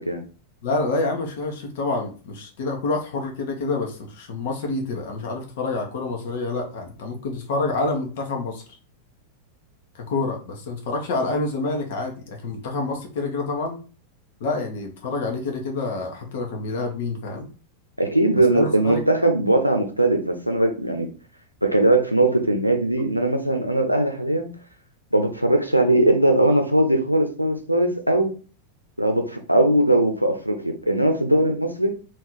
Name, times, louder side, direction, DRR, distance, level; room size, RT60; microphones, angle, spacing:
voice 1, 0.6-8.6 9.9-13.8 14.4-17.5 18.5-19.0 26.5-26.6, left 3 dB, 55° left, 2 dB, 1.2 m, -27 dB
voice 2, 18.0-21.1 21.6-24.5 25.1-28.3 29.0-31.9, right 1 dB, 90° right, 4 dB, 0.7 m, -20 dB
3.6 x 3.1 x 4.4 m, 0.38 s
figure-of-eight pair, 90°, 0 cm